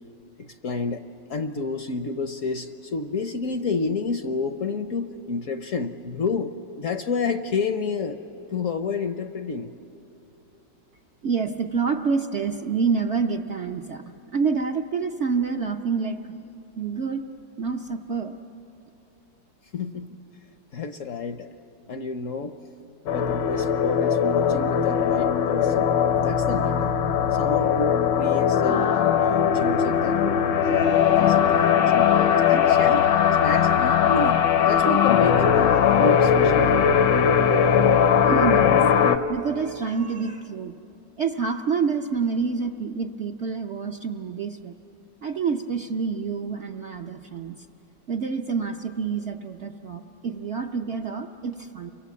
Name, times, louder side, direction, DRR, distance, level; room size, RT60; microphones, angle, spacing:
voice 1, 0.4-8.2 8.5-9.7 19.7-20.2 20.7-21.5 21.9-22.6 23.0-25.9 26.2-26.9 27.3-33.1 33.4-35.6 36.0-36.7, left 4 dB, 60° left, 8 dB, 0.9 m, -30 dB
voice 2, 11.2-14.0 14.3-16.2 16.8-17.2 17.6-18.4 38.3-38.8 39.3-40.7 41.2-44.7 45.2-47.6 48.1-51.9, right 5 dB, 55° right, 3 dB, 0.8 m, -27 dB
sound 1, 23.1-39.2, left 8 dB, 75° left, 1.5 m, -20 dB
29.5 x 23.5 x 8.4 m, 2.9 s
omnidirectional pair, 1.9 m